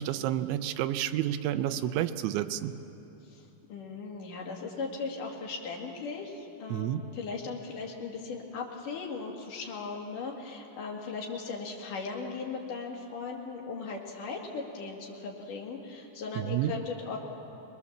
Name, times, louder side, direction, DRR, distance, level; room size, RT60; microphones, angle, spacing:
voice 1, 0.0-2.7 6.7-7.0 16.4-16.7, right 12 dB, 85° right, 11 dB, 3.0 m, -30 dB
voice 2, 3.2-17.2, left 4 dB, 50° left, 0 dB, 3.2 m, -38 dB
25.0 x 20.5 x 7.2 m, 2.9 s
omnidirectional pair, 5.3 m